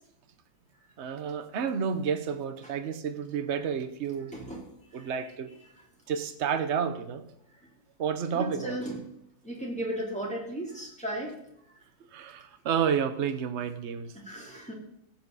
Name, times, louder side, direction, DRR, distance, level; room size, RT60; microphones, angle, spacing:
voice 1, 1.0-4.3 4.9-5.5 6.1-7.2 8.0-8.8 12.1-14.1, right 7 dB, 45° right, 8 dB, 1.1 m, -30 dB
voice 2, 4.3-4.6 8.3-9.0 9.4-11.3 14.1-14.7, right 1 dB, 5° left, -3 dB, 3.3 m, -35 dB
15.5 x 8.9 x 4.1 m, 0.79 s
omnidirectional pair, 2.0 m